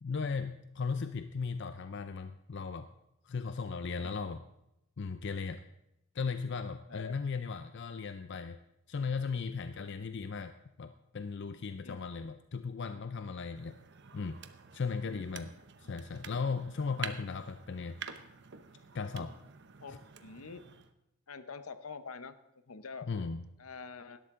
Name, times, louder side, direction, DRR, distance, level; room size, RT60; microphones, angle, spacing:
voice 1, 0.0-2.9 3.2-4.4 5.0-5.6 6.1-8.6 8.9-13.8 14.1-14.4 14.7-15.5 15.8-18.0 18.9-19.3 23.1-23.4, left 5 dB, 55° left, 10 dB, 0.5 m, -37 dB
voice 2, 4.0-4.3 6.9-7.2 9.7-9.9 11.8-12.0 15.0-15.3 16.7-16.8 19.8-20.6 21.3-23.1 23.6-24.2, left 5 dB, 75° left, 12 dB, 0.8 m, -46 dB
sound 1, 13.5-20.9, right 7 dB, 50° right, 0.8 m, -48 dB
18.0 x 12.0 x 3.7 m, 0.86 s
head